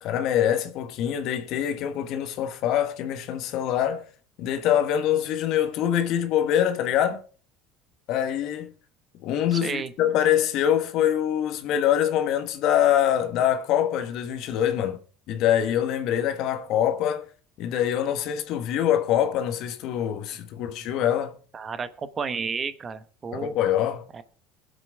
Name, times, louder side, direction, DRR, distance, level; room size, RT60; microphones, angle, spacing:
voice 1, 0.0-4.0 4.4-7.2 8.1-8.7 9.2-15.0 15.3-17.3 17.6-21.4 23.3-24.1, left 10 dB, 65° left, 1.4 m, -24 dB
voice 2, 9.5-9.9 20.6-20.7 21.5-23.5 24.1-24.2, right 5 dB, 30° right, 1.0 m, -32 dB
21.5 x 7.7 x 3.5 m
supercardioid pair, 105°, 0 cm